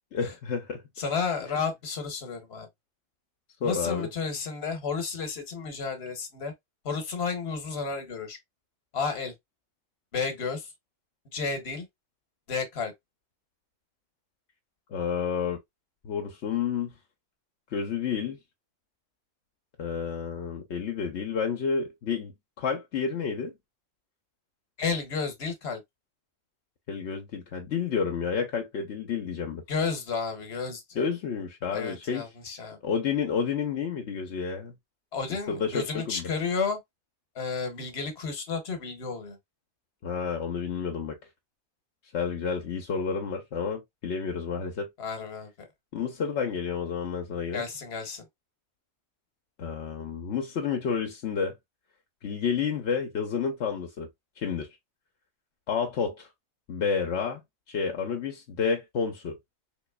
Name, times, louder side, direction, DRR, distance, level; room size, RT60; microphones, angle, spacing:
voice 1, 0.1-0.8 1.5-1.6 3.6-4.1 14.9-15.6 16.0-16.9 17.7-18.4 19.8-23.5 26.9-29.6 31.0-32.2 32.8-34.7 35.5-36.3 40.0-41.2 42.1-44.9 45.9-47.6 49.6-51.6 52.2-54.1 54.4-54.7 55.7-56.3 56.7-57.4 57.7-59.4, left 6 dB, 85° left, 1.0 m, -30 dB
voice 2, 1.0-2.7 3.6-6.5 6.8-8.4 8.9-9.3 10.1-10.7 11.3-11.9 12.5-12.9 24.8-25.8 29.7-31.0 31.7-32.8 35.1-36.8 37.3-39.4 45.0-45.7 47.5-48.3, left 5 dB, 70° left, 1.3 m, -32 dB
3.7 x 3.0 x 2.2 m
omnidirectional pair, 1.1 m